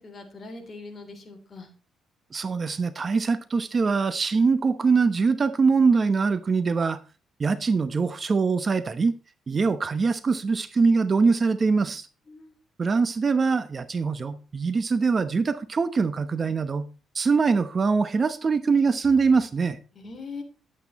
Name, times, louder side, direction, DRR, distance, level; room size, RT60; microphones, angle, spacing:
voice 1, 0.0-1.7 12.3-12.5 19.9-20.4, left 3 dB, 40° left, 3.4 m, -41 dB
voice 2, 2.3-7.0 7.4-9.1 9.5-12.0 12.8-16.9 17.1-19.8, right 4 dB, 35° right, 0.9 m, -23 dB
11.0 x 8.4 x 4.1 m
cardioid pair, 90°, 0 cm